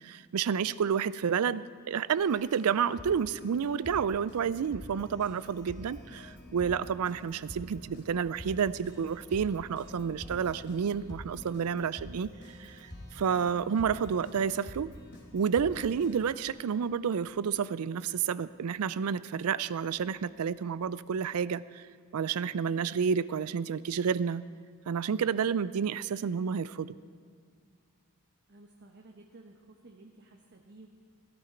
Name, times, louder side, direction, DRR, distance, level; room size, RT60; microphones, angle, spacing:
voice 1, 0.0-14.9 15.3-21.8 22.1-24.4 24.9-27.0, right 7 dB, 80° right, 18 dB, 0.4 m, -30 dB
Keyboard (musical), 2.2-16.5, left 1 dB, 55° left, 3.2 m, -48 dB
sound 1, 4.3-21.4, left 1 dB, 5° left, 0.8 m, -57 dB
voice 2, 28.5-30.9, right 2 dB, 55° right, 1 dB, 1.0 m, -54 dB
15.5 x 13.0 x 4.4 m, 2.1 s
head